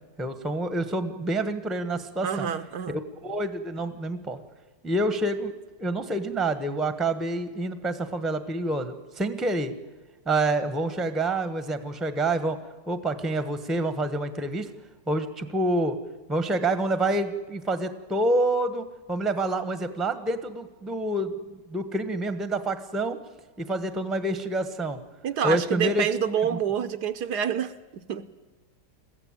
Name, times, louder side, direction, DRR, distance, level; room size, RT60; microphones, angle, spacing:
voice 1, 0.2-2.5 2.9-4.4 4.8-5.5 5.8-9.7 10.2-12.6 12.9-14.7 15.1-16.0 16.3-23.2 23.6-25.0 25.4-26.1 26.5-26.6, right 2 dB, ahead, 11 dB, 0.9 m, -27 dB
voice 2, 2.2-3.0 25.2-28.3, right 8 dB, 70° right, 10 dB, 1.4 m, -27 dB
21.5 x 15.0 x 8.9 m, 1.3 s
omnidirectional pair, 1.9 m